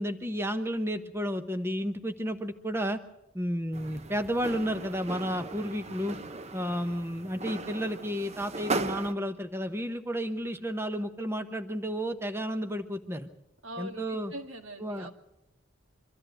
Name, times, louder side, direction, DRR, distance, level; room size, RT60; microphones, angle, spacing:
voice 1, 0.0-3.0 3.3-6.2 6.5-13.3 13.8-14.3 14.8-15.1, equal, 10° right, 7 dB, 1.0 m, -32 dB
sound 1, 3.7-9.1, right 3 dB, 30° right, 0.7 m, -37 dB
voice 2, 13.6-15.1, equal, 80° right, 5 dB, 2.3 m, -42 dB
24.5 x 13.5 x 7.9 m, 0.90 s
head